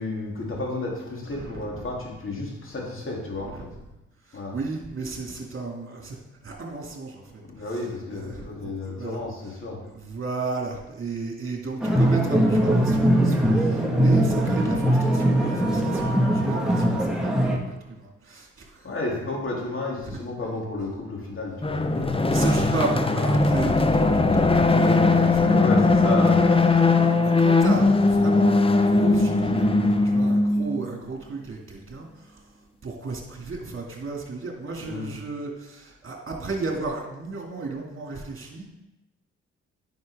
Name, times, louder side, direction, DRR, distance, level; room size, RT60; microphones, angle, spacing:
voice 1, 0.0-3.7 4.3-4.6 7.4-9.8 18.8-22.2 25.4-26.4 34.8-35.2, left 2 dB, 40° left, -2 dB, 3.0 m, -32 dB
voice 2, 1.3-1.9 3.4-3.7 4.2-9.2 9.8-18.9 20.0-20.1 21.9-25.6 26.0-38.7, right 3 dB, 45° right, 0 dB, 2.4 m, -34 dB
sound 1, 11.8-17.6, right 1 dB, ahead, 1.7 m, -21 dB
sound 2, 21.6-30.8, left 3 dB, 20° left, 0.8 m, -19 dB
9.3 x 5.8 x 3.6 m, 0.97 s
hypercardioid pair, 45°, 30 cm